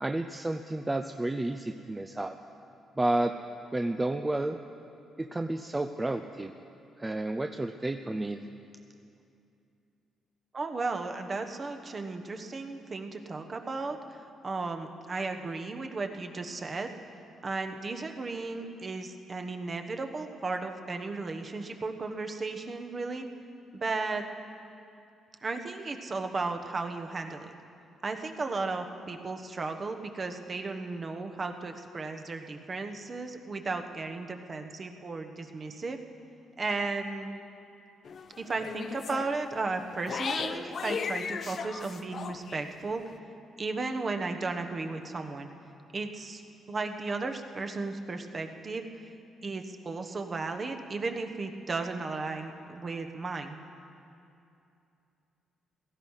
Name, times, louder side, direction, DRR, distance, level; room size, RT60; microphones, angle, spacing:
voice 1, 0.0-2.3 3.0-3.3 3.7-4.6 5.2-6.5 7.0-8.4, right 2 dB, 15° right, 5 dB, 0.5 m, -31 dB
voice 2, 10.5-16.9 17.4-23.3 23.7-24.3 25.4-27.5 28.0-36.0 36.6-37.3 38.4-43.0 43.6-45.5 45.9-46.4 46.7-48.8 49.4-53.6, right 3 dB, 35° right, 5 dB, 1.2 m, -35 dB
sound 1, 38.0-42.6, left 6 dB, 50° left, 0.6 m, -36 dB
17.0 x 14.5 x 5.7 m, 2.6 s
cardioid pair, 90°, 0 cm